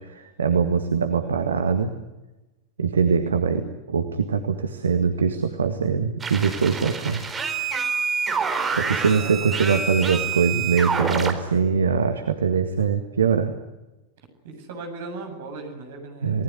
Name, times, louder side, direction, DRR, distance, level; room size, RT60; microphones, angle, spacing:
voice 1, 0.1-1.9 2.8-7.2 8.7-13.5 16.2-16.4, right 6 dB, 70° right, 7 dB, 1.9 m, -22 dB
sound 1, 6.2-11.3, right 5 dB, 15° right, 4.3 m, -27 dB
voice 2, 9.2-10.5 14.2-16.4, right 3 dB, 55° right, 5 dB, 7.9 m, -39 dB
29.5 x 19.5 x 9.9 m, 1.1 s
figure-of-eight pair, 90°, 0 cm